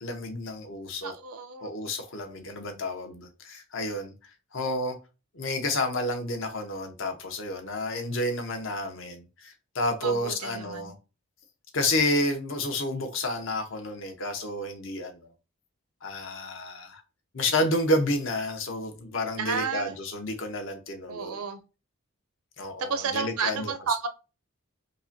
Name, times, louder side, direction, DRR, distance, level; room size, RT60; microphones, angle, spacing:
voice 1, 0.0-1.1 1.6-4.1 4.5-5.0 5.3-10.9 11.7-15.2 16.0-17.0 17.3-21.4 22.6-23.7, left 1 dB, 60° left, 0.8 m, -30 dB
voice 2, 1.0-1.7 10.0-10.9 19.4-20.0 21.1-21.6 22.8-24.1, right 5 dB, 85° right, 0.6 m, -31 dB
5.1 x 2.2 x 2.6 m
head